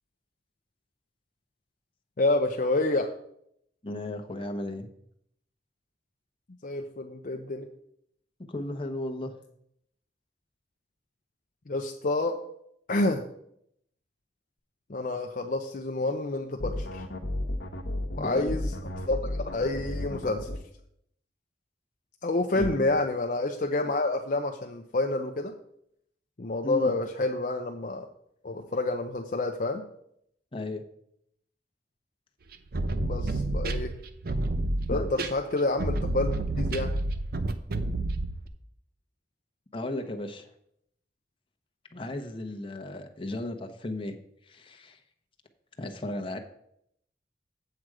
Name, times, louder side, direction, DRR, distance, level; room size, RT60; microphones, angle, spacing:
voice 1, 2.2-3.1 6.6-7.7 11.7-12.4 12.9-13.2 14.9-17.0 18.1-18.6 19.1-20.5 22.2-25.5 26.4-28.1 28.4-29.8 32.8-33.9 34.9-36.9, left 2 dB, 50° left, 4 dB, 0.6 m, -28 dB
voice 2, 3.8-4.9 8.5-9.3 18.2-18.6 22.5-23.0 26.6-26.9 30.5-30.8 34.9-35.2 39.7-40.5 41.9-44.1 44.4-45.0 45.8-46.4, left 1 dB, 30° left, 4 dB, 1.0 m, -35 dB
sound 1, 16.6-20.6 22.6-22.7, left 1 dB, 75° left, 1.1 m, -33 dB
sound 2, 32.5-38.5, right 2 dB, 55° right, 0.7 m, -29 dB
7.8 x 7.7 x 4.8 m, 0.73 s
head